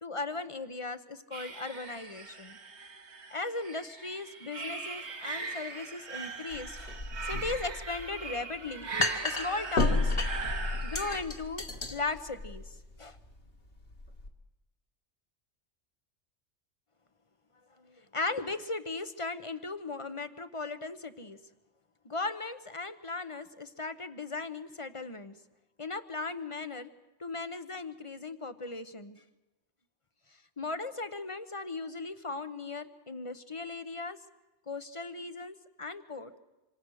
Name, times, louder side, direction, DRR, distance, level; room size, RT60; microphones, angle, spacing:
voice 1, 0.0-2.6 3.3-6.9 7.2-10.2 10.8-11.6 11.9-13.2 17.8-21.4 22.0-25.3 25.8-26.9 27.2-29.2 30.6-34.2 34.7-36.4, left 3 dB, 30° left, 11 dB, 1.0 m, -37 dB
sound 1, 1.3-11.2, right 4 dB, 70° right, 1.9 m, -40 dB
sound 2, 6.5-14.3, left 2 dB, 55° left, 2.3 m, -33 dB
26.5 x 26.5 x 6.4 m, 1.0 s
omnidirectional pair, 1.2 m